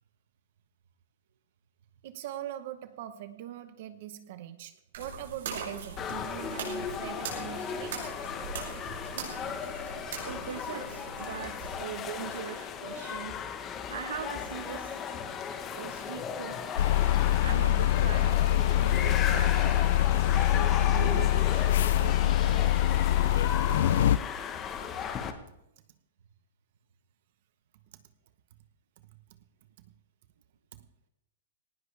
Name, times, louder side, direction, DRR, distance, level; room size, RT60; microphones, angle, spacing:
voice 1, 2.0-8.1 27.9-28.0 29.0-29.4 29.8-29.9 30.7-30.9, right 12 dB, 45° right, 11 dB, 0.9 m, -42 dB
sound 1, 4.9-11.7, right 5 dB, 60° right, 6.0 m, -41 dB
sound 2, 6.0-25.3, left 7 dB, 20° left, 1.0 m, -36 dB
voice 2, 10.2-13.3 13.9-15.1 15.7-16.6 17.4-22.6, right 9 dB, 80° right, 8 dB, 1.1 m, -41 dB
sound 3, 16.8-24.2, left 13 dB, 55° left, 0.5 m, -24 dB
18.5 x 18.0 x 3.3 m, 0.84 s
hypercardioid pair, 170°, 0 cm